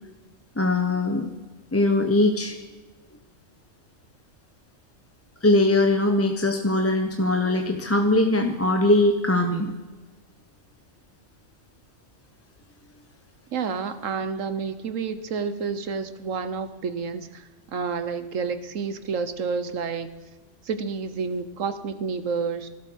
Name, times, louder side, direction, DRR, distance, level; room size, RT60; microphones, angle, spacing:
voice 1, 0.6-1.3 1.7-2.5 5.4-9.7, left 2 dB, 15° left, 4 dB, 0.8 m, -21 dB
voice 2, 13.5-20.1 20.6-22.7, right 5 dB, 80° right, 11 dB, 1.4 m, -29 dB
17.0 x 12.5 x 6.3 m, 1.2 s
omnidirectional pair, 1.3 m